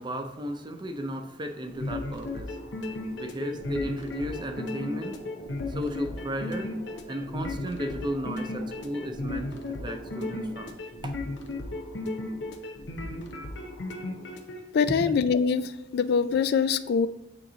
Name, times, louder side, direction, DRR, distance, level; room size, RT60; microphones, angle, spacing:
voice 1, 0.0-5.2 5.7-6.7 7.1-9.5 9.8-10.7 11.0-11.1 15.0-15.1, equal, 25° right, 5 dB, 0.6 m, -34 dB
sound 1, 1.7-14.6, left 2 dB, 85° left, 0.8 m, -35 dB
sound 2, 3.6-10.8, equal, 45° left, 1.9 m, -48 dB
voice 2, 14.7-17.1, left 6 dB, 60° left, 13 dB, 0.3 m, -24 dB
8.8 x 3.0 x 3.9 m, 0.88 s
head